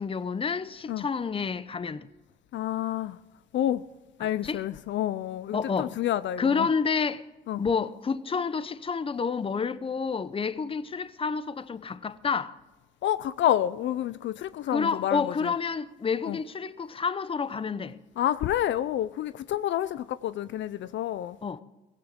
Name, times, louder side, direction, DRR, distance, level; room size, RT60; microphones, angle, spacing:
voice 1, 0.0-2.1 4.4-4.6 5.5-5.9 6.4-7.2 7.6-12.5 14.7-18.0 21.4-21.6, left 5 dB, 30° left, 0.7 m, -29 dB
voice 2, 2.5-3.2 3.5-3.8 4.2-6.7 7.5-7.6 13.0-15.5 16.2-16.4 18.2-21.4, left 12 dB, 70° left, 0.5 m, -29 dB
17.0 x 16.0 x 3.7 m
cardioid pair, 90°, 20 cm